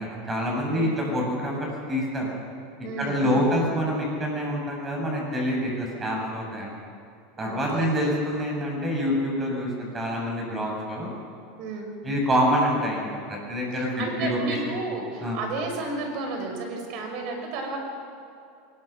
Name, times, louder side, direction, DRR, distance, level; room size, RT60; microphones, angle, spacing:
voice 1, 0.0-2.3 3.0-6.7 7.4-11.1 12.0-13.9 14.2-14.6 15.2-15.4, equal, 20° right, -1 dB, 7.4 m, -26 dB
voice 2, 2.8-3.5 7.4-7.9 11.6-11.9 13.7-17.8, right 3 dB, 55° right, 3 dB, 5.6 m, -32 dB
23.0 x 21.0 x 6.0 m, 2.5 s
supercardioid pair, 135°, 0 cm